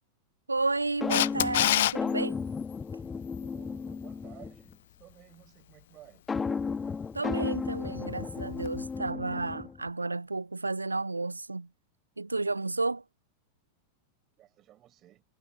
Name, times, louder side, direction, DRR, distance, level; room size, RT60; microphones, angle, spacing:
voice 1, 0.5-2.4 7.1-11.7 12.2-13.0, right 3 dB, 80° right, 0.8 m, -32 dB
sound 1, 1.0-4.7 6.3-9.9, left 5 dB, 15° left, 2.0 m, -34 dB
Camera, 1.1-1.9 8.7-8.8, left 14 dB, 55° left, 0.5 m, -24 dB
voice 2, 3.5-6.2 14.4-15.2, right 13 dB, 35° right, 5.5 m, -55 dB
figure-of-eight pair, 90°, 0 cm